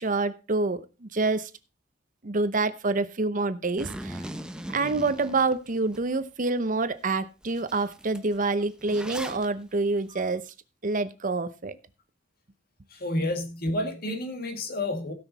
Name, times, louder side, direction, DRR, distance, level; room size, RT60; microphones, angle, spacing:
voice 1, 0.0-1.5 2.2-4.3 4.7-10.5 10.8-11.8, right 3 dB, 45° right, 0.8 m, -27 dB
Zipper (clothing), 3.8-6.0 6.5-6.6 7.1-7.2 7.4-9.5, right 1 dB, 5° right, 0.8 m, -39 dB
voice 2, 12.9-15.1, left 1 dB, 55° left, 2.0 m, -30 dB
16.5 x 6.1 x 4.1 m
head